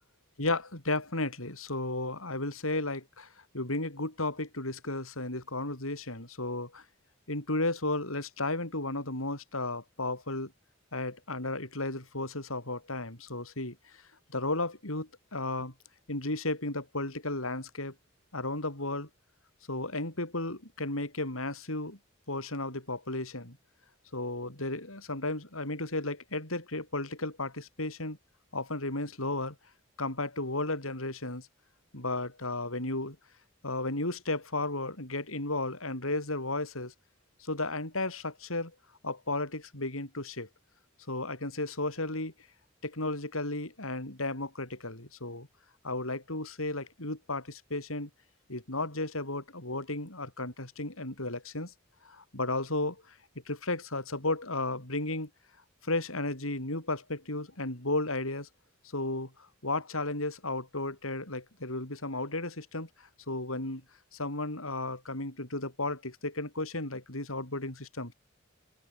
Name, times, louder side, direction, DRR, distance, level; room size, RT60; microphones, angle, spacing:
voice 1, 0.4-3.3 3.5-6.8 7.3-10.5 10.9-14.0 14.3-15.7 16.1-17.9 18.3-19.1 19.7-22.0 22.3-23.6 24.1-28.2 28.5-29.6 30.0-31.5 31.9-33.2 33.6-36.9 37.4-38.7 39.0-40.5 41.1-42.3 42.8-45.5 45.8-48.1 48.5-51.7 52.0-53.2 53.5-55.3 55.8-58.5 58.9-63.8 64.1-68.1, left 2 dB, 90° left, 7.8 m, -34 dB
open air
head